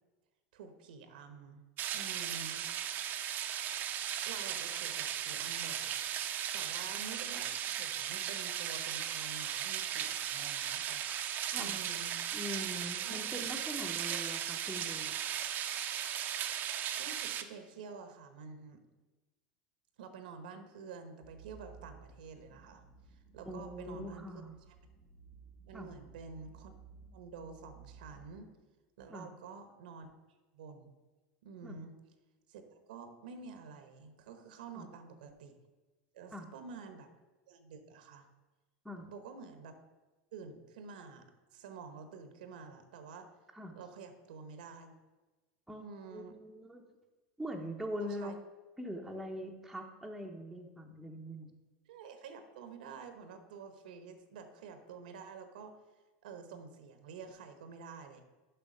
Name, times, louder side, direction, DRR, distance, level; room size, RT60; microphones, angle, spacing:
voice 1, 0.5-1.6 1.9-2.7 4.3-6.0 6.5-11.0 11.5-12.2 13.0-13.5 14.1-14.4 17.0-18.8 20.0-22.8 23.1-24.3 25.7-26.7 27.1-28.5 29.0-30.1 30.5-30.9 31.4-31.9 32.5-32.6 32.9-35.5 36.1-37.1 37.5-38.3 39.1-39.8 40.3-41.2 41.5-43.3 43.7-44.9 45.8-46.3 48.0-48.3 51.9-55.7 56.2-58.2, right 5 dB, 85° right, 8 dB, 1.0 m, -49 dB
sound 1, 1.8-17.4, right 10 dB, 40° right, 0.6 m, -37 dB
voice 2, 12.3-15.2 23.4-24.6 25.7-25.9 29.1-29.3 31.6-31.8 34.8-34.9 36.3-36.5 38.8-39.1 43.5-43.7 45.7-46.9 47.4-48.4 48.8-51.5, equal, 5° right, 0 dB, 0.8 m, -42 dB
sound 2, 21.2-28.3, right 6 dB, 55° left, 2.2 m, -56 dB
6.8 x 5.6 x 5.5 m, 1.2 s
supercardioid pair, 115°, 5 cm